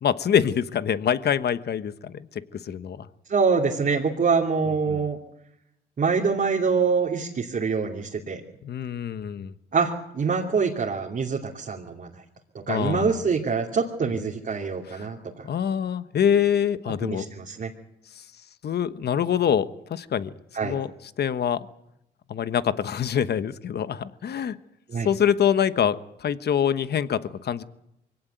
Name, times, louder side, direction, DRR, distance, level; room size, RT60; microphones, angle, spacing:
voice 1, 0.0-3.1 4.9-5.0 8.6-9.5 12.7-13.2 14.9-15.1 15.4-17.3 18.2-18.3 18.6-20.3 20.6-20.9 21.2-21.7 22.3-24.6 25.0-27.6, left 8 dB, 55° left, 13 dB, 1.2 m, -25 dB
voice 2, 3.3-5.2 6.0-8.4 9.7-12.1 12.5-15.4 17.0-17.7 20.5-20.8 24.9-25.1, right 5 dB, 45° right, -1 dB, 2.8 m, -25 dB
23.5 x 17.0 x 9.3 m, 0.82 s
cardioid pair, 90°, 20 cm